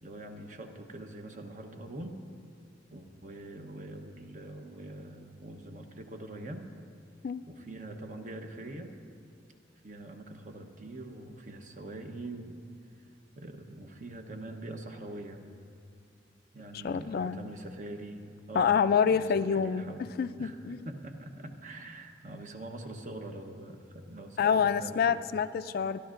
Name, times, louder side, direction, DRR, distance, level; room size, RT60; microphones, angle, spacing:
voice 1, 0.0-2.2 2.9-6.7 7.5-9.0 9.8-12.6 13.4-15.4 16.5-20.0 20.4-20.6 20.8-25.2, right 2 dB, 45° right, 5 dB, 0.9 m, -43 dB
voice 2, 16.7-17.4 18.5-20.9 24.4-26.0, left 6 dB, 55° left, 12 dB, 0.3 m, -27 dB
28.0 x 11.5 x 2.5 m, 2.4 s
head